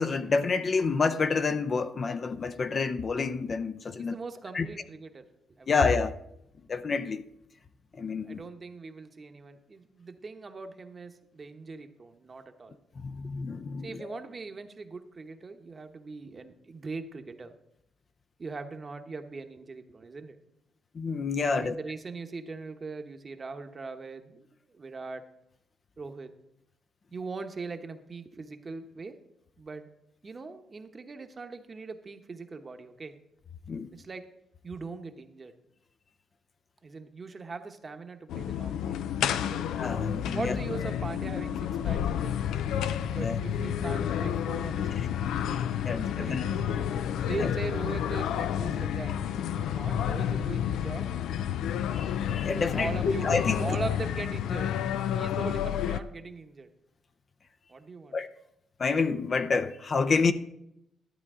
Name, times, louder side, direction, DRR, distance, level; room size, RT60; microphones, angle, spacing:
voice 1, 0.0-4.1 4.5-4.7 5.7-6.1 6.7-7.2 7.9-8.4 13.0-14.2 20.9-21.7 33.7-33.9 39.7-40.6 43.2-43.4 45.0-45.1 45.8-46.5 47.4-47.5 51.9-53.0 53.2-53.7 58.1-58.3 58.8-60.3, left 4 dB, 45° left, 0.6 m, -28 dB
voice 2, 4.0-5.3 5.6-5.7 8.2-12.8 13.8-17.5 18.4-20.4 21.5-24.5 24.7-25.2 26.0-26.3 27.1-29.2 29.6-29.9 30.2-33.2 33.9-34.3 34.6-35.5 36.8-39.0 39.4-39.7 40.3-42.5 43.1-46.6 47.3-49.1 49.6-51.1 52.7-53.3 53.6-54.7 55.1-56.7 57.7-58.2, right 4 dB, 35° right, 1.0 m, -40 dB
sound 1, 38.3-56.0, left 9 dB, 90° left, 0.4 m, -30 dB
12.5 x 8.5 x 3.7 m
cardioid pair, 95°, 0 cm